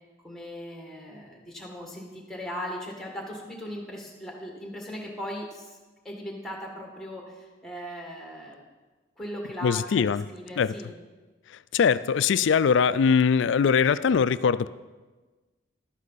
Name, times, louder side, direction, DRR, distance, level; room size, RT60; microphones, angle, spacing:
voice 1, 0.2-5.8 6.0-8.6 9.2-10.9, equal, ahead, 0 dB, 1.7 m, -38 dB
voice 2, 9.6-10.2 10.6-10.7 11.7-14.7, left 6 dB, 70° left, 16 dB, 0.3 m, -22 dB
12.0 x 9.9 x 4.1 m, 1.3 s
head